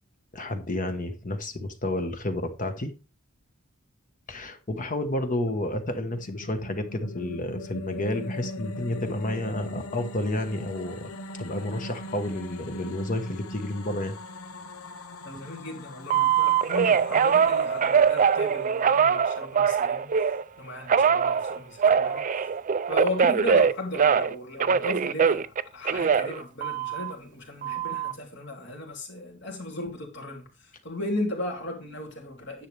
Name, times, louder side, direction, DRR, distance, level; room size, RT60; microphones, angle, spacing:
voice 1, 0.3-2.9 4.3-11.1 11.4-14.2, left 1 dB, 40° left, 1.2 m, -30 dB
sound 1, 6.0-19.1, left 1 dB, 75° left, 0.9 m, -40 dB
voice 2, 15.2-22.5 22.9-32.7, left 1 dB, 55° left, 2.9 m, -36 dB
Telephone, 16.1-20.4 20.9-24.3 24.6-27.1 27.6-28.1, right 6 dB, 35° right, 0.4 m, -22 dB
10.0 x 7.3 x 3.3 m
head